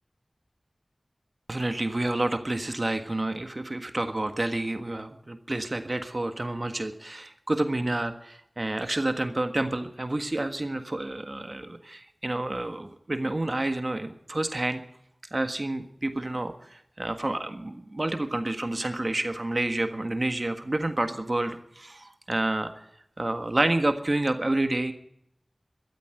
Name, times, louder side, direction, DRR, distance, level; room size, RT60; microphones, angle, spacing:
voice 1, 1.5-14.8 15.3-22.7 23.2-24.9, right 2 dB, 45° right, 7 dB, 1.5 m, -29 dB
13.5 x 13.5 x 7.9 m, 0.74 s
wide cardioid pair, 60°, 0 cm